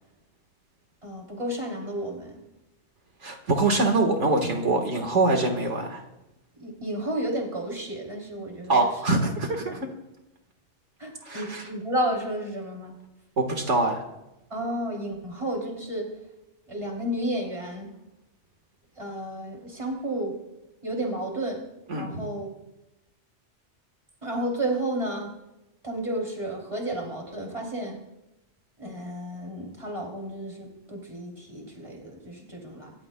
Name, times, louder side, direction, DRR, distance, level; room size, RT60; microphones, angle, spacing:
voice 1, 1.0-2.4 6.6-8.9 9.7-9.8 11.0-13.0 14.5-16.1 16.7-17.9 19.0-20.3 20.8-21.6 21.9-22.5 24.2-25.3 25.8-28.0 28.8-32.9, right 1 dB, 25° right, 0 dB, 3.1 m, -32 dB
voice 2, 3.2-6.0 8.7-9.8 11.3-11.6 13.4-14.0 21.9-22.1, right 2 dB, 70° right, 3 dB, 1.8 m, -24 dB
26.5 x 14.5 x 2.2 m, 0.94 s
omnidirectional pair, 1.3 m